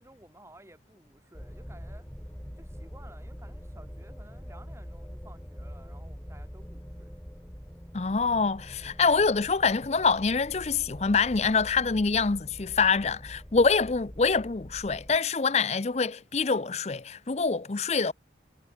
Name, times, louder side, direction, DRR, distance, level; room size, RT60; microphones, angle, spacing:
voice 1, 0.0-2.1 2.6-7.1, right 1 dB, 15° right, 7.2 m, -54 dB
sound 1, 1.3-15.2, equal, 10° left, 1.8 m, -44 dB
voice 2, 7.9-18.1, left 4 dB, 35° left, 0.6 m, -25 dB
head